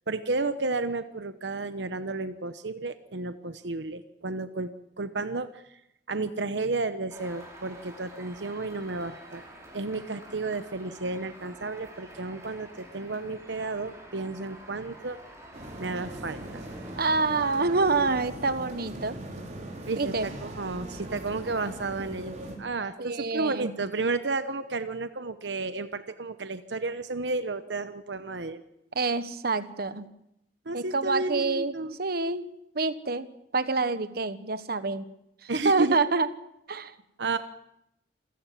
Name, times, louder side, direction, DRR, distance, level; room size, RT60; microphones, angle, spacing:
voice 1, 0.1-5.8 6.1-9.4 9.7-15.2 15.8-16.6 19.9-28.6 30.7-31.9 35.5-36.0 37.2-37.4, right 3 dB, 75° right, 10 dB, 1.0 m, -32 dB
sound 1, 7.1-18.2, right 1 dB, 15° right, 6.3 m, -48 dB
sound 2, 15.5-22.6, right 1 dB, 45° right, 4.8 m, -40 dB
voice 2, 17.0-19.2 20.0-20.3 23.0-23.7 28.9-30.1 30.7-31.7 32.0-32.4 32.7-33.3 33.5-35.1 35.4-36.3 36.7-36.9, right 3 dB, 60° right, 12 dB, 1.2 m, -27 dB
27.5 x 16.5 x 7.5 m, 0.83 s
head